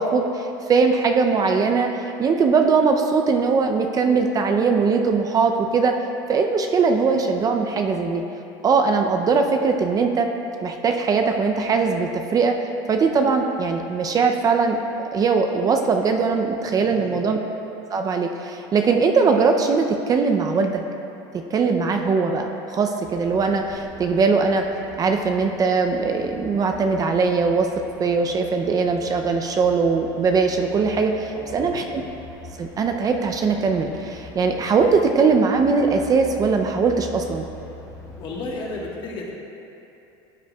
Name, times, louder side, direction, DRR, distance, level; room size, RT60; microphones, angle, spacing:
voice 1, 0.0-5.9 6.3-8.2 8.6-10.3 10.6-12.6 12.9-14.8 15.1-17.4 17.9-20.8 21.3-24.6 25.0-27.7 28.0-32.0 32.6-37.5, right 4 dB, 30° right, 4 dB, 0.5 m, -20 dB
voice 2, 16.7-17.2 31.3-31.8 38.2-39.3, left 2 dB, 45° left, -2 dB, 1.4 m, -33 dB
sound 1, 23.0-38.8, left 2 dB, 25° left, 1.2 m, -43 dB
12.5 x 6.6 x 2.3 m, 2.9 s
supercardioid pair, 115°, 12 cm